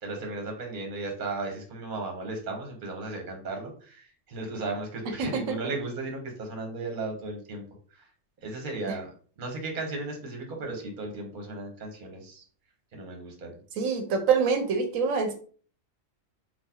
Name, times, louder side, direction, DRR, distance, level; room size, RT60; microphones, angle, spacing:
voice 1, 0.0-7.6 7.9-8.1 8.4-9.1 9.4-12.4 12.9-13.6, right 3 dB, 45° right, 2 dB, 0.9 m, -35 dB
voice 2, 5.2-5.6 13.8-15.3, right 5 dB, 85° right, 5 dB, 1.0 m, -25 dB
3.8 x 2.4 x 2.8 m, 0.43 s
omnidirectional pair, 1.4 m